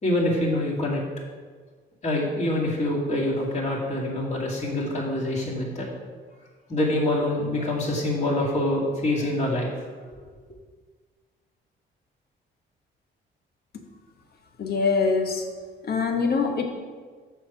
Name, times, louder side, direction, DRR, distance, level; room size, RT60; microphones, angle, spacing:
voice 1, 0.0-1.0 2.0-5.9 6.7-9.7, left 1 dB, 35° left, -4 dB, 2.4 m, -25 dB
voice 2, 14.6-15.4 15.8-16.6, left 4 dB, 50° left, 4 dB, 1.1 m, -23 dB
6.8 x 4.6 x 6.3 m, 1.5 s
cardioid pair, 90°, 20 cm